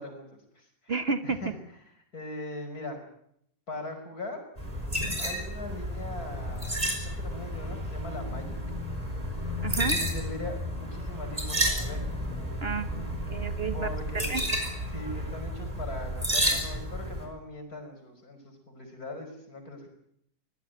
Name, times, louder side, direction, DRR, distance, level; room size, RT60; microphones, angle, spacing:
voice 1, 0.0-0.9 1.2-1.5 2.1-3.0 3.7-4.4 5.2-8.6 9.8-12.0 13.7-14.5 14.9-19.9, left 2 dB, 65° left, 5 dB, 5.9 m, -40 dB
voice 2, 0.9-1.5 9.6-10.0 12.6-13.9 14.1-14.4, right 4 dB, 45° right, 10 dB, 1.1 m, -31 dB
sound 1, 4.6-17.3, equal, 20° right, 4.8 m, -31 dB
23.5 x 17.0 x 9.2 m, 0.71 s
omnidirectional pair, 1.7 m